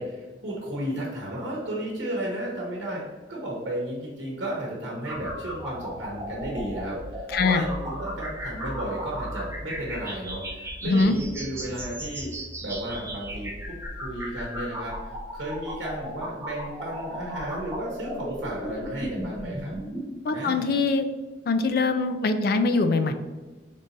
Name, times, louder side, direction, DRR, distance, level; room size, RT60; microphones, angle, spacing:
voice 1, 0.0-12.3 12.6-19.7 20.3-20.7, right 1 dB, 70° right, -3 dB, 1.0 m, -33 dB
sound 1, 5.0-20.0, equal, 15° right, 0.7 m, -36 dB
voice 2, 7.3-7.6 10.8-11.1 20.2-21.1 21.5-23.1, left 3 dB, 55° left, 8 dB, 0.3 m, -23 dB
3.7 x 2.6 x 4.0 m, 1.2 s
head